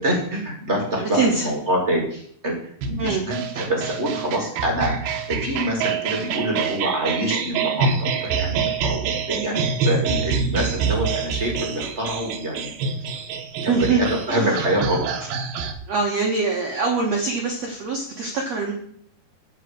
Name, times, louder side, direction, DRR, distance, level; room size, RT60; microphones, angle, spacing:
voice 1, 0.0-12.7 13.0-13.1 13.6-15.3, right 1 dB, 25° right, 1 dB, 1.9 m, -26 dB
voice 2, 1.0-1.5 3.0-3.3 13.7-14.5 15.9-18.7, right 4 dB, 60° right, 0 dB, 1.9 m, -23 dB
sound 1, 2.8-15.7, right 5 dB, 75° right, 2.8 m, -26 dB
11.0 x 4.9 x 7.3 m, 0.62 s
omnidirectional pair, 4.5 m